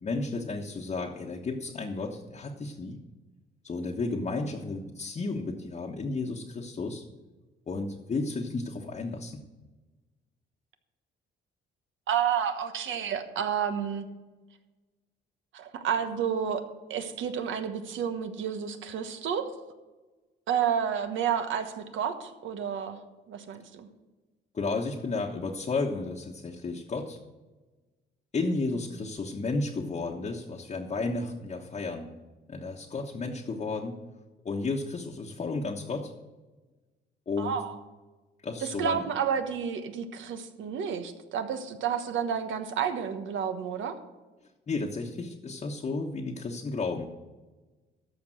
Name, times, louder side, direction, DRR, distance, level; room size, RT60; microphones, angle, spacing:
voice 1, 0.0-3.0 3.6-7.0 7.7-9.4 24.5-27.2 28.3-32.1 32.5-34.0 34.4-36.1 37.3-37.6 38.4-39.0 44.7-47.1, left 3 dB, 35° left, 0 dB, 1.2 m, -33 dB
voice 2, 12.1-14.1 15.5-16.6 16.9-19.5 20.5-23.0 23.3-23.9 37.4-37.8 38.6-44.0, right 8 dB, 75° right, 8 dB, 1.3 m, -30 dB
13.5 x 5.2 x 7.8 m, 1.2 s
cardioid pair, 90°, 20 cm